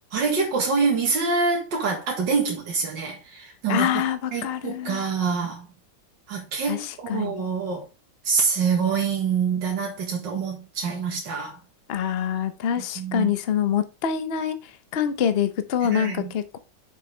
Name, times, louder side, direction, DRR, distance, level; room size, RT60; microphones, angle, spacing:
voice 1, 0.1-4.0 4.3-5.7 6.3-7.8 8.2-11.6 13.0-13.3 15.8-16.3, right 5 dB, 85° right, 2.2 m, -26 dB
voice 2, 3.7-5.0 6.7-7.4 11.9-14.6 14.9-16.6, left 9 dB, 50° left, 0.8 m, -25 dB
6.6 x 6.6 x 3.3 m
omnidirectional pair, 2.0 m